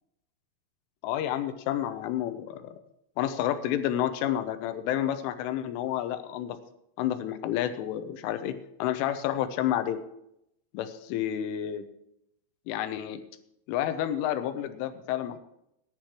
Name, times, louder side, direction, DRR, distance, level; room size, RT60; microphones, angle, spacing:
voice 1, 1.0-2.8 3.2-6.6 7.0-8.5 8.8-10.0 10.7-11.8 12.7-13.2 13.7-15.4, left 11 dB, 85° left, 10 dB, 3.2 m, -30 dB
19.0 x 10.5 x 3.1 m, 0.78 s
omnidirectional pair, 5.7 m